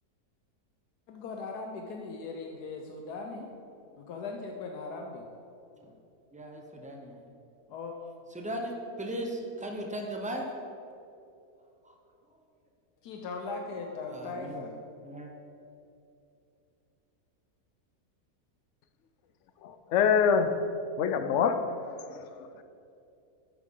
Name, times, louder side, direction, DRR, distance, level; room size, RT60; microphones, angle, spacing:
voice 1, 1.1-3.5 4.0-5.3 7.7-7.9 13.0-14.7, left 3 dB, 85° left, 2 dB, 1.3 m, -39 dB
voice 2, 6.3-7.2 8.3-10.5 11.8-11.9 14.1-14.7 15.0-15.3, right 1 dB, 5° right, 1 dB, 0.6 m, -37 dB
voice 3, 19.6-20.6 21.0-21.6 22.1-22.3, left 7 dB, 65° left, 9 dB, 0.7 m, -25 dB
9.9 x 8.2 x 3.8 m, 2.7 s
omnidirectional pair, 1.7 m